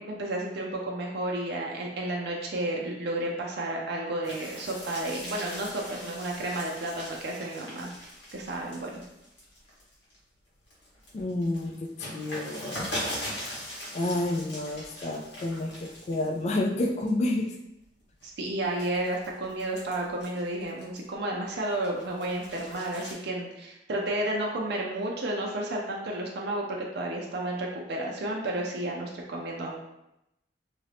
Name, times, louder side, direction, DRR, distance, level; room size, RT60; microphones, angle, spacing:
voice 1, 0.0-9.0 18.2-29.8, right 1 dB, 60° right, -1 dB, 0.5 m, -32 dB
sound 1, 4.2-10.2 10.6-16.5 16.8-17.3 17.8-21.1 21.6-23.1, left 1 dB, 85° left, 1.3 m, -40 dB
voice 2, 11.1-12.9 13.4-13.5 13.9-17.5, left 2 dB, 40° left, 1 dB, 0.3 m, -30 dB
2.8 x 2.6 x 3.3 m, 0.88 s
head